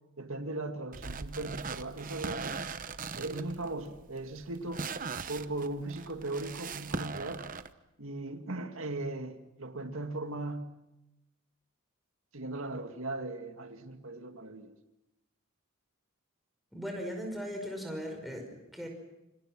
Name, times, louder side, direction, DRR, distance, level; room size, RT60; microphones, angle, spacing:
voice 1, 0.2-2.6 3.1-4.8 5.3-7.5 8.0-10.7 12.3-14.7, right 2 dB, 70° right, 2.2 m, -38 dB
sound 1, 0.9-7.7, right 4 dB, 40° right, 0.9 m, -40 dB
voice 2, 16.7-18.9, equal, ahead, 5.5 m, -38 dB
29.0 x 26.0 x 6.1 m
head